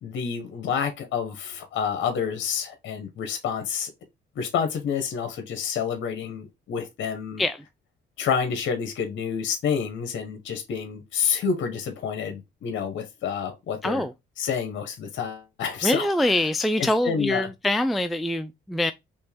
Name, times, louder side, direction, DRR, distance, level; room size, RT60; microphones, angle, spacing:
voice 1, 0.0-3.9 4.3-7.4 8.2-14.0 14.4-16.5 16.8-17.5, left 7 dB, 70° left, 1.1 m, -29 dB
voice 2, 15.8-18.9, left 1 dB, ahead, 0.3 m, -24 dB
4.4 x 3.0 x 3.4 m
cardioid pair, 90°, 20 cm